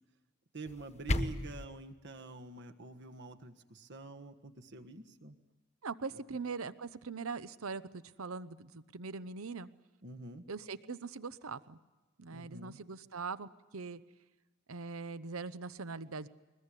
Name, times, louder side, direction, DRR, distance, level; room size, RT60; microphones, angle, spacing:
voice 1, 0.5-5.4 10.0-10.5 12.3-12.8, right 2 dB, 55° right, 6 dB, 1.5 m, -47 dB
sound 1, 0.6-1.7, left 1 dB, 30° left, 1.1 m, -34 dB
voice 2, 5.8-9.7 10.5-11.8 12.2-14.0 14.7-16.3, right 4 dB, 80° right, 15 dB, 0.8 m, -41 dB
22.5 x 21.0 x 9.9 m, 1.2 s
head